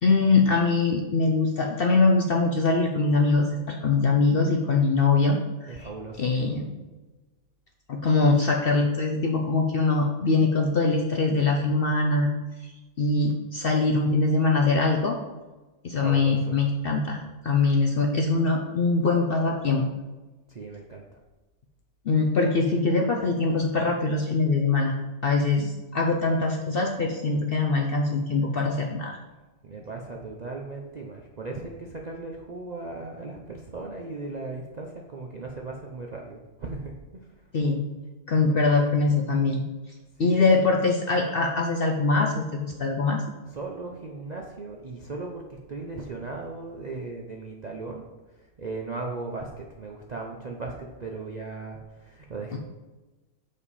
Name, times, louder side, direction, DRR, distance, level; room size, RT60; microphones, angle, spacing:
voice 1, 0.0-5.9 6.2-6.7 7.9-12.3 12.6-12.7 13.0-15.2 15.8-19.9 22.1-24.9 25.2-29.2 37.5-37.8 38.3-39.6 40.2-43.2 52.5-52.6, left 3 dB, 60° left, 2 dB, 0.6 m, -23 dB
voice 2, 5.7-6.3 16.0-16.6 20.5-21.2 29.6-37.2 40.2-40.3 43.5-48.1 48.4-52.6, right 3 dB, 55° right, 0 dB, 0.5 m, -37 dB
7.1 x 5.1 x 4.1 m, 1.2 s
omnidirectional pair, 1.6 m